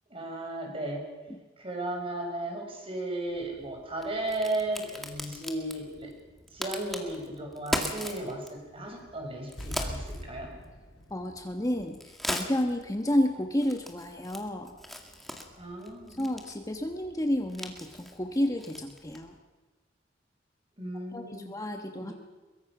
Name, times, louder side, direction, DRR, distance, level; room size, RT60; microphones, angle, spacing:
voice 1, 0.1-1.1 1.6-6.1 6.5-10.5 15.6-16.2 20.8-21.5 22.0-22.1, right 1 dB, 30° right, 2 dB, 5.5 m, -35 dB
Crack, 3.3-19.4, equal, ahead, 2.1 m, -41 dB
sound 1, 9.6-12.8 13.0-13.1, equal, 85° left, 3.7 m, -42 dB
voice 2, 11.1-14.7 16.1-19.3 21.1-22.1, left 1 dB, 20° left, 4 dB, 1.2 m, -31 dB
23.0 x 22.5 x 6.1 m, 1.2 s
head